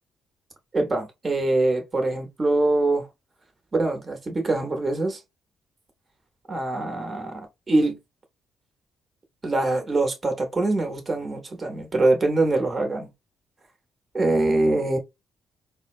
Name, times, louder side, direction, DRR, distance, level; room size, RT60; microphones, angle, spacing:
voice 1, 0.7-3.1 3.7-5.2 6.5-8.0 9.4-13.1 14.1-15.0, right 2 dB, 30° right, 0.9 m, -23 dB
3.9 x 2.1 x 2.4 m
cardioid pair, 90°, 0 cm